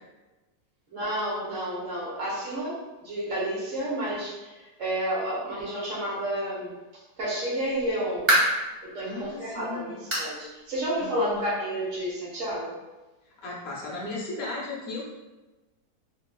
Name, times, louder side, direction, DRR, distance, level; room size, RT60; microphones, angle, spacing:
voice 1, 0.9-6.7 7.2-8.3 8.8-12.7, right 1 dB, 55° right, -5 dB, 1.2 m, -30 dB
sound 1, 7.6-8.7 9.2-9.3 10.1-10.4 10.7-10.8 11.3-11.4 12.5-12.6, right 1 dB, 30° right, 0.5 m, -25 dB
voice 2, 9.0-10.0 11.0-11.4 13.4-15.1, left 2 dB, 60° left, -4 dB, 0.6 m, -36 dB
2.9 x 2.8 x 2.2 m, 1.1 s
omnidirectional pair, 1.8 m